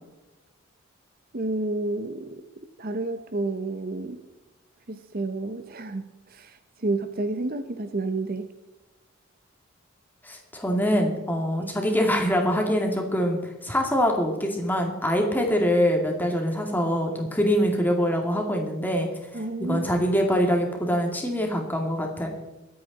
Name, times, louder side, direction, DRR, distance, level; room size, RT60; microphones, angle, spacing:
voice 1, 1.3-2.4 2.8-4.2 4.9-8.5 11.6-11.7 19.3-19.9, right 2 dB, 45° right, 8 dB, 0.9 m, -30 dB
voice 2, 10.2-19.1 19.6-22.3, equal, 10° left, 2 dB, 2.4 m, -24 dB
23.0 x 8.8 x 4.2 m, 1.1 s
head